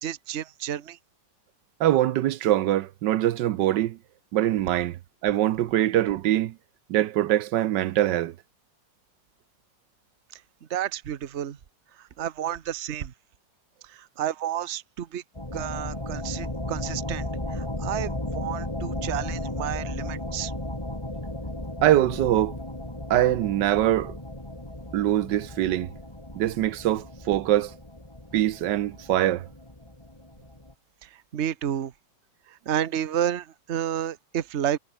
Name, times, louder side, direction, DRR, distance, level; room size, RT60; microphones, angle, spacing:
voice 1, 0.0-1.0 10.3-10.4 10.7-11.6 12.0-13.1 13.8-15.2 15.5-20.5 31.0-31.9 32.5-34.8, right 10 dB, 45° right, 1.2 m, -31 dB
voice 2, 1.8-4.0 4.3-6.5 6.9-8.3 21.8-22.5 23.1-24.1 24.9-25.9 26.3-27.7 28.3-29.5, right 13 dB, 85° right, 1.4 m, -23 dB
sound 1, 15.4-30.7, left 1 dB, 15° left, 3.7 m, -35 dB
omnidirectional pair, 1.9 m